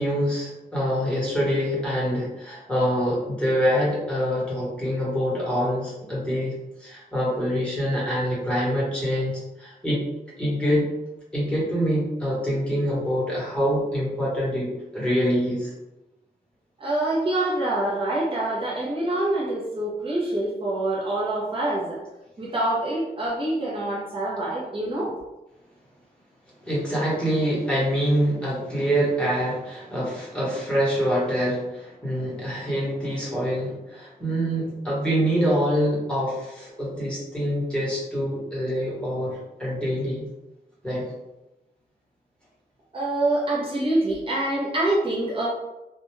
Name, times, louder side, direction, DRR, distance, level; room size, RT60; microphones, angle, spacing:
voice 1, 0.0-6.5 6.8-10.0 10.4-10.9 11.3-15.7 26.6-40.2 40.8-41.1, equal, 5° left, -7 dB, 1.1 m, -25 dB
voice 2, 16.8-22.0 22.4-25.1 42.9-45.5, right 1 dB, 35° right, -5 dB, 0.7 m, -25 dB
2.3 x 2.2 x 3.1 m, 0.98 s
wide cardioid pair, 125°, 17 cm